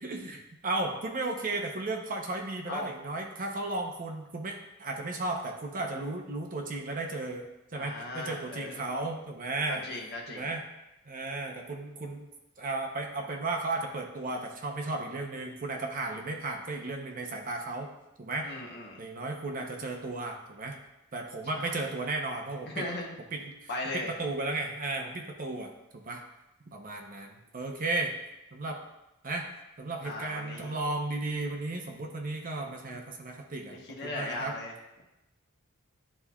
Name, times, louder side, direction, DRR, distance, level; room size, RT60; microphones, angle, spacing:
voice 1, 0.0-9.9 10.3-10.6 11.1-12.3 12.6-17.9 18.2-18.5 19.0-20.8 21.1-22.9 23.3-26.2 26.7-28.1 28.5-28.8 29.2-29.5 29.8-33.8 34.0-34.6, right 2 dB, 40° right, 2 dB, 0.8 m, -34 dB
voice 2, 7.7-8.8 9.7-10.5 18.4-19.0 21.5-21.8 22.7-23.2 23.7-24.1 30.0-30.7 33.9-34.7, left 2 dB, 50° left, -1 dB, 1.2 m, -37 dB
11.0 x 4.2 x 2.4 m, 0.93 s
head